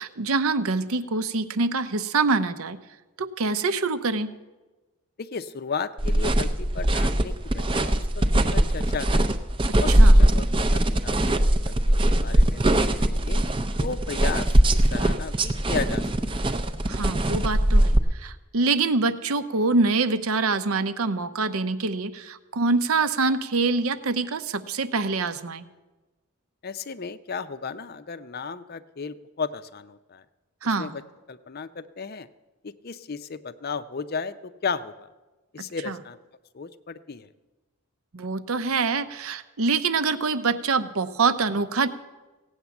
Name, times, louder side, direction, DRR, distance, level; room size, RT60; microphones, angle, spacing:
voice 1, 0.0-2.8 3.2-4.3 9.9-10.1 16.9-25.7 30.6-30.9 35.6-35.9 38.1-41.9, right 3 dB, 75° right, 12 dB, 0.7 m, -25 dB
voice 2, 5.2-9.3 9.8-13.4 13.8-16.5 26.6-30.2 30.6-31.0 31.3-32.3 32.6-35.1 35.5-36.2 36.5-37.3, left 5 dB, 45° left, 13 dB, 0.5 m, -35 dB
sound 1, 6.0-18.0, right 1 dB, 20° right, 0.5 m, -21 dB
16.0 x 8.7 x 7.1 m, 1.2 s
head